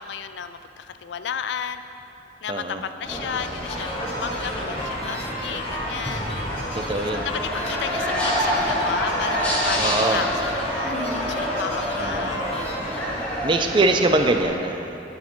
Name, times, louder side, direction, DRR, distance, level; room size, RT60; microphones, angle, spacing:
voice 1, 0.0-1.8 2.4-6.3 7.1-12.4, left 7 dB, 70° left, 10 dB, 0.3 m, -33 dB
voice 2, 2.5-2.8 6.8-7.3 9.8-10.2 12.0-12.3 13.4-15.0, right 2 dB, 25° right, 5 dB, 0.4 m, -23 dB
sound 1, 3.0-14.5, equal, 5° left, 1.2 m, -28 dB
sound 2, 3.6-13.4, left 1 dB, 30° left, 1.1 m, -32 dB
9.6 x 5.7 x 4.4 m, 3.0 s
head